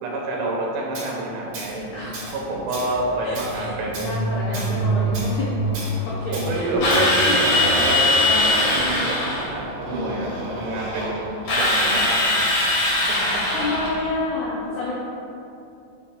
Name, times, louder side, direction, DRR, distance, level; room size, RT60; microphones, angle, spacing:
voice 1, 0.0-1.9 2.3-4.1 4.8-4.9 6.3-11.2 11.5-12.3 13.1-13.4, right 2 dB, 85° right, -2 dB, 2.8 m, -28 dB
Tools, 0.9-1.1 1.5-1.8 2.1-2.4 2.7-2.9 3.4-3.6 3.9-4.1 4.5-4.7 5.1-5.3 5.7-5.9 6.3-6.5 6.9-7.1, right 2 dB, 65° right, 3.0 m, -35 dB
Motorcycle, 1.5-14.2, right 2 dB, 50° right, 2.1 m, -31 dB
voice 2, 1.9-2.3 3.2-3.7 4.0-5.5 6.1-7.3 8.1-8.5 9.9-10.3 13.5-14.9, left 2 dB, 85° left, -6 dB, 1.5 m, -29 dB
Drill, 6.8-9.5 11.5-14.0, left 2 dB, 50° left, 1.9 m, -20 dB
7.4 x 2.9 x 5.0 m, 2.7 s
omnidirectional pair, 4.1 m